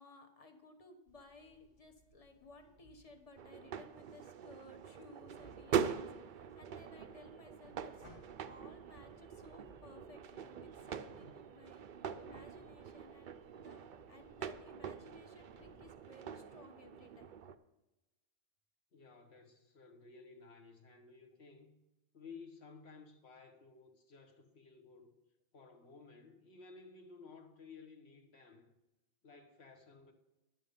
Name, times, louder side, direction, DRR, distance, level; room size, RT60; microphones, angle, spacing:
voice 1, 0.0-17.4, left 2 dB, 35° left, 1.1 m, -59 dB
sound 1, 1.1-15.9, equal, 80° left, 2.4 m, -65 dB
sound 2, 3.4-17.5, right 8 dB, 60° right, 0.5 m, -43 dB
voice 2, 18.9-21.8 22.1-25.1 25.5-28.7 29.2-30.1, left 4 dB, 65° left, 1.4 m, -56 dB
11.0 x 7.6 x 5.1 m
omnidirectional pair, 1.2 m